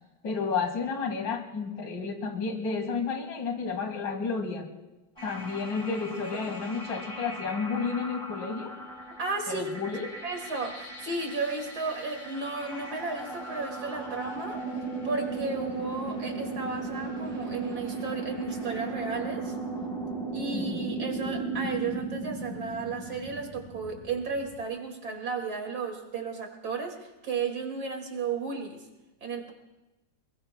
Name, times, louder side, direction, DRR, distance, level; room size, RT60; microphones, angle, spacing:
voice 1, 0.2-4.7 5.2-8.7 9.5-10.1 20.5-21.0, left 5 dB, 75° left, 4 dB, 2.6 m, -31 dB
sound 1, 5.2-24.6, right 3 dB, 15° left, 4.6 m, -37 dB
voice 2, 9.2-9.7 10.2-14.6 15.0-19.6 20.3-28.8 29.2-29.5, right 4 dB, 55° right, 3 dB, 2.7 m, -34 dB
29.0 x 21.0 x 2.2 m, 1.1 s
omnidirectional pair, 2.0 m